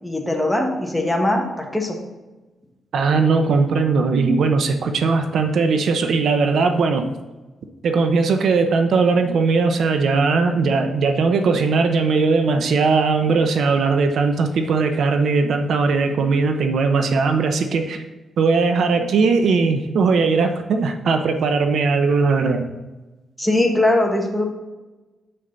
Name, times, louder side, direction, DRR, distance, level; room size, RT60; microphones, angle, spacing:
voice 1, 0.0-2.0 23.4-24.5, left 1 dB, 5° left, 1 dB, 1.5 m, -20 dB
voice 2, 2.9-7.1 7.8-18.0 18.4-22.7, right 4 dB, 70° right, 6 dB, 0.7 m, -19 dB
7.1 x 6.6 x 3.9 m, 1.1 s
cardioid pair, 105°, 0 cm